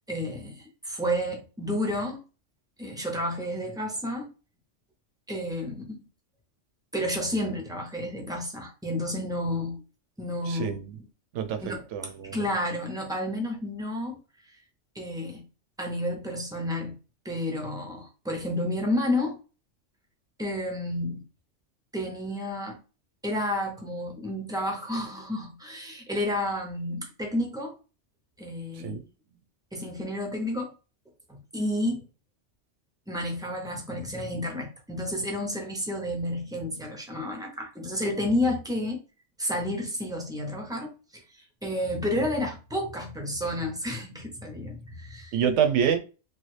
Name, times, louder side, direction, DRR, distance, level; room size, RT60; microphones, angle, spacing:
voice 1, 0.1-2.2 2.8-4.3 5.3-6.0 6.9-9.8 10.2-10.7 11.6-14.2 14.9-15.4 15.8-17.0 17.2-19.4 20.4-21.2 21.9-22.8 23.2-27.8 28.4-29.0 29.7-30.7 31.3-32.0 33.1-39.0 39.4-41.2 41.6-45.4, left 1 dB, 5° right, 0.5 m, -31 dB
voice 2, 10.5-11.0 11.3-12.4 28.8-29.0 45.3-46.0, right 8 dB, 80° right, 0.9 m, -27 dB
3.2 x 2.3 x 3.1 m
omnidirectional pair, 1.3 m